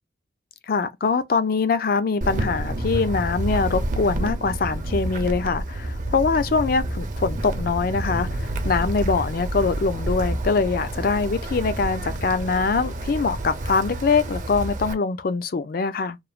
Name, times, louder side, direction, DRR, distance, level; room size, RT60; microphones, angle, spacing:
voice 1, 0.7-16.2, left 4 dB, 55° left, 0.4 m, -23 dB
Wind, 2.2-14.9, right 1 dB, 45° right, 0.5 m, -29 dB
3.1 x 2.0 x 2.3 m
head